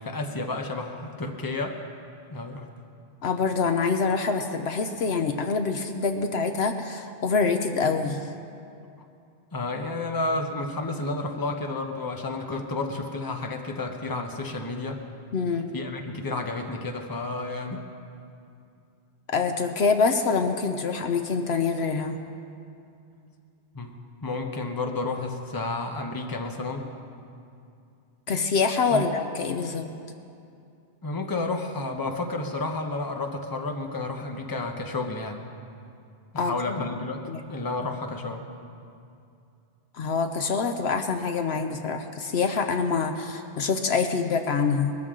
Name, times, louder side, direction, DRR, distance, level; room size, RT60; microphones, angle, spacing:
voice 1, 0.0-1.8 2.3-2.7 9.5-15.0 15.7-17.8 23.7-23.9 24.2-26.9 28.9-29.1 31.0-35.4 36.3-37.2 37.5-38.5, left 2 dB, 20° left, 3 dB, 1.0 m, -31 dB
voice 2, 3.2-8.2 15.3-15.7 19.3-22.2 28.3-29.9 36.4-36.8 37.3-37.4 40.0-45.0, left 5 dB, 65° left, 6 dB, 1.0 m, -25 dB
21.0 x 13.5 x 3.8 m, 2.5 s
omnidirectional pair, 1.2 m